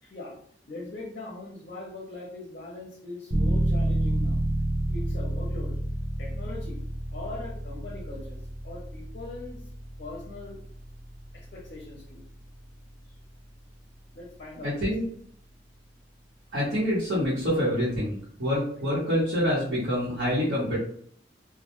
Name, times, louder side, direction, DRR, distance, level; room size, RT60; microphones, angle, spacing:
voice 1, 0.0-0.4 0.7-4.4 4.9-5.8 6.2-6.8 7.1-9.6 10.0-10.6 11.3-12.2 14.1-14.9, left 2 dB, 50° left, -3 dB, 0.6 m, -41 dB
sound 1, 3.3-13.8, right 1 dB, 15° right, 0.3 m, -30 dB
voice 2, 14.6-15.0 16.5-20.8, equal, 75° right, -8 dB, 0.9 m, -26 dB
2.1 x 2.1 x 2.9 m, 0.62 s
head